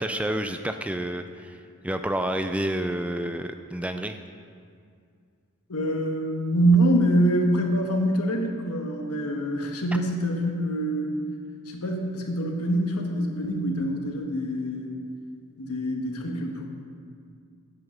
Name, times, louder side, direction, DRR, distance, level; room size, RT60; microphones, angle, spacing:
voice 1, 0.0-4.2, right 1 dB, 5° right, 7 dB, 0.3 m, -29 dB
voice 2, 5.7-11.2 11.7-15.0 15.6-16.6, right 1 dB, 90° left, 2 dB, 1.4 m, -25 dB
9.1 x 8.4 x 6.1 m, 2.2 s
head